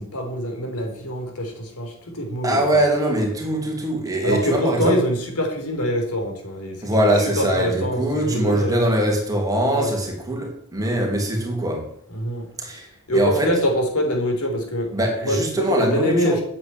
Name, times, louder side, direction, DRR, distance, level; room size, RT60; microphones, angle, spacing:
voice 1, 0.0-2.8 4.2-8.9 9.7-9.9 12.1-12.5 13.1-16.4, equal, 80° left, 4.1 m, -25 dB
voice 2, 2.4-5.0 6.8-11.9 12.6-12.9 13.1-13.5 14.9-16.4, right 1 dB, 15° right, 2.8 m, -22 dB
9.3 x 8.8 x 8.9 m
head